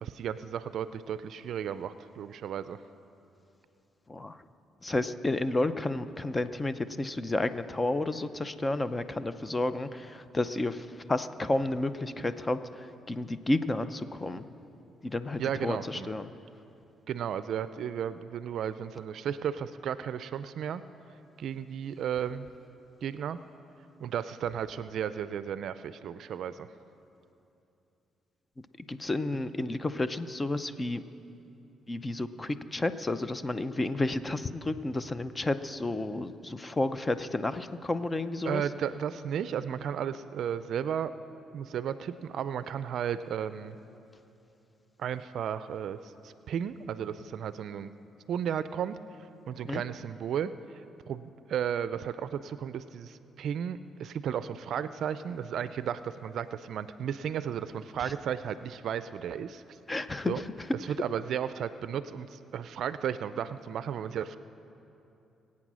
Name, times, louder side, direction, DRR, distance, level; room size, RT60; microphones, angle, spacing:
voice 1, 0.0-2.8 15.4-16.1 17.1-20.8 21.4-22.5 23.0-23.4 24.0-26.7 38.4-41.1 41.5-43.8 45.0-46.0 46.2-47.9 48.3-49.0 49.5-50.5 51.1-59.6 60.3-60.4 60.8-64.4, right 8 dB, 70° right, 13 dB, 0.4 m, -34 dB
voice 2, 4.8-12.8 13.1-14.4 15.0-16.3 28.9-31.0 31.9-38.6 49.7-49.8 59.9-60.3, left 2 dB, 20° left, 12 dB, 0.6 m, -31 dB
21.5 x 8.6 x 6.2 m, 2.8 s
cardioid pair, 90°, 0 cm